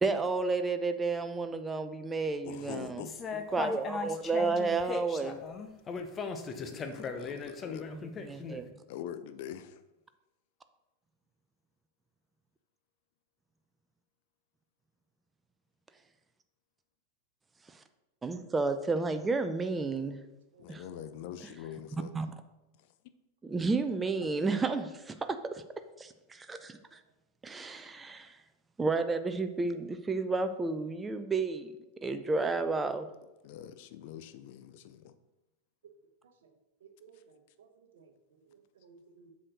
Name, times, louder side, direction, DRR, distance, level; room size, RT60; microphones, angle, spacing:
voice 1, 0.0-3.1 3.5-5.4 7.9-8.7 18.2-20.2 20.7-20.8 21.9-22.3 23.4-25.1 25.5-25.6 26.0-27.0 27.4-28.4 28.8-31.7 32.0-33.1, right 3 dB, 15° right, 9 dB, 0.6 m, -31 dB
voice 2, 2.4-3.1 6.0-6.1 6.5-7.9 8.9-9.8 20.6-22.1 33.4-35.1, left 10 dB, 50° left, 11 dB, 0.5 m, -44 dB
sound 1, 3.0-8.6, left 5 dB, 25° left, 0.8 m, -38 dB
voice 3, 20.5-20.9 36.8-37.7 37.9-38.1 38.8-39.3, right 5 dB, 60° right, 6 dB, 1.0 m, -58 dB
7.6 x 6.4 x 4.0 m, 0.96 s
figure-of-eight pair, 90°, 0 cm